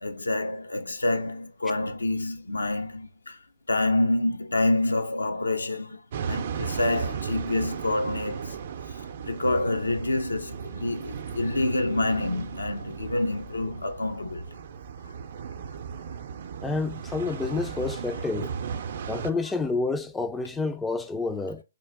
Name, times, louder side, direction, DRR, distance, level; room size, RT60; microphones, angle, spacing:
voice 1, 0.0-3.4 3.7-6.0 6.3-8.5 9.2-14.4, left 2 dB, 90° left, 0.6 m, -27 dB
sound 1, 6.1-19.3, right 7 dB, 50° right, 0.5 m, -35 dB
voice 2, 16.6-18.5 19.1-21.6, left 3 dB, 5° left, 0.3 m, -29 dB
3.7 x 2.5 x 3.5 m
hypercardioid pair, 140°, 0 cm